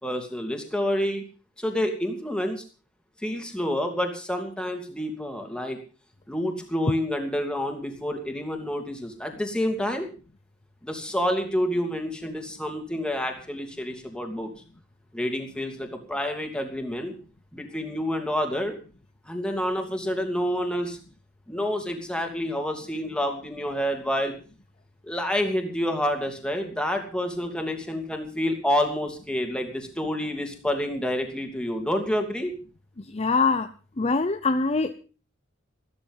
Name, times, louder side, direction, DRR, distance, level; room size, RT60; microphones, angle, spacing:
voice 1, 0.0-1.2 1.6-2.6 3.2-5.8 6.3-10.1 10.8-14.5 15.1-17.1 17.5-18.7 19.3-21.0 21.5-24.3 25.0-32.5, equal, 5° left, 3 dB, 2.8 m, -28 dB
voice 2, 33.1-33.7 34.0-34.9, left 4 dB, 30° left, 9 dB, 0.7 m, -23 dB
14.0 x 13.0 x 5.5 m, 0.37 s
head